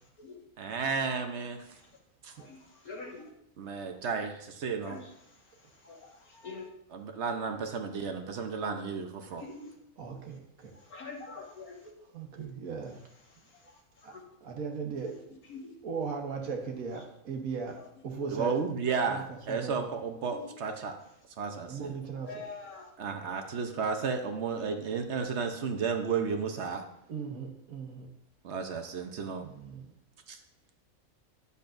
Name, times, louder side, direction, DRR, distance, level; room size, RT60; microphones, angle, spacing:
voice 1, 0.6-1.6 2.2-2.3 3.6-5.0 6.9-9.4 18.3-20.9 21.4-22.0 23.0-26.8 28.4-29.4 30.3-30.4, right 5 dB, 60° right, 5 dB, 1.0 m, -33 dB
voice 2, 2.3-3.3 4.8-5.1 5.8-6.7 9.4-9.7 10.9-11.9 14.1-14.2 15.0-15.1 15.5-15.6 17.7-17.8 20.3-20.5 22.3-22.9, left 3 dB, 90° left, -1 dB, 2.0 m, -44 dB
voice 3, 10.0-10.7 12.1-13.0 14.0-14.1 14.4-15.1 15.8-18.5 19.1-19.9 21.7-22.4 27.1-28.1 29.4-29.8, right 5 dB, 75° right, 2 dB, 1.5 m, -37 dB
10.5 x 6.9 x 2.5 m, 0.77 s
omnidirectional pair, 1.5 m